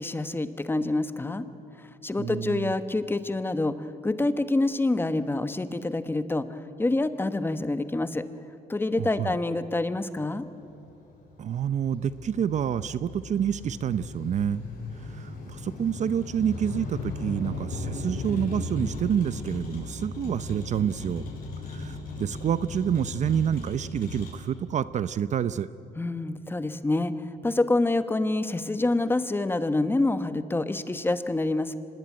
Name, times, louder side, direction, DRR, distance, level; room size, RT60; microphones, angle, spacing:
voice 1, 0.0-1.4 2.0-8.3 8.7-10.5 26.0-31.8, left 2 dB, 15° left, 11 dB, 1.2 m, -27 dB
voice 2, 2.2-2.7 9.0-9.4 11.4-14.6 15.1-21.2 21.7-25.7, right 9 dB, 45° right, 15 dB, 0.6 m, -28 dB
Motor vehicle (road), 10.2-24.3, left 3 dB, 60° left, 7.3 m, -37 dB
25.5 x 20.0 x 9.4 m, 2.7 s
cardioid pair, 110°, 17 cm